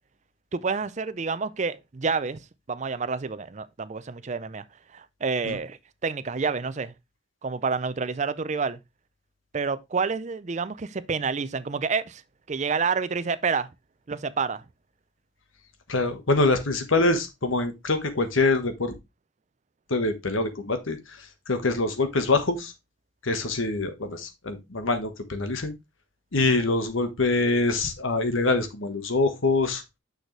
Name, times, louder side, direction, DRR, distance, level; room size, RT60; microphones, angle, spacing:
voice 1, 0.5-2.4 2.7-4.6 4.9-6.9 7.4-8.8 9.5-12.2 12.5-13.7 14.1-14.6 26.4-26.5, right 5 dB, 35° right, 0.5 m, -28 dB
voice 2, 15.9-18.9 19.9-21.0 21.5-22.7 23.2-25.7 26.3-29.8, left 3 dB, 80° left, 1.4 m, -24 dB
6.5 x 6.4 x 3.2 m
head